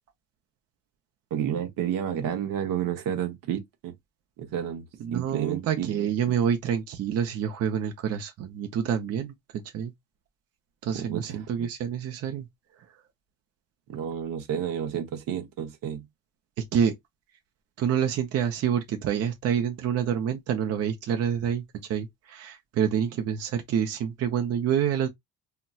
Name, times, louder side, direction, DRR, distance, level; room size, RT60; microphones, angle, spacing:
voice 1, 1.3-3.9 4.4-4.9 5.1-5.9 10.9-11.4 13.9-16.1, right 9 dB, 80° right, 0.8 m, -30 dB
voice 2, 5.0-9.9 10.8-12.5 16.6-16.9 17.8-21.6 21.9-25.1, right 8 dB, 50° right, 0.5 m, -27 dB
4.0 x 2.2 x 2.3 m
cardioid pair, 165°, 33 cm